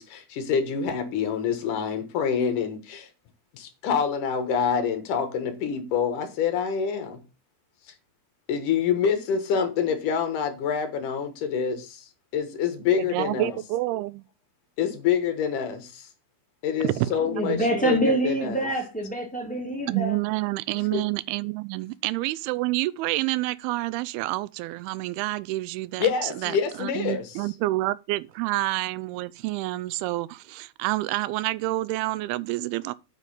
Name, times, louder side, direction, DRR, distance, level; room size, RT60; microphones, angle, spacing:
voice 1, 0.0-3.1 3.5-7.2 8.5-12.1 12.3-13.5 14.8-16.1 16.6-18.7 20.9-21.0 26.0-27.3, left 7 dB, 65° left, 2.6 m, -26 dB
voice 2, 13.0-14.2 16.8-17.1 17.5-17.9 19.9-32.9, right 18 dB, 90° right, 2.5 m, -28 dB
voice 3, 17.2-20.2, right 1 dB, 5° left, 1.3 m, -26 dB
8.2 x 5.6 x 5.3 m
omnidirectional pair, 4.4 m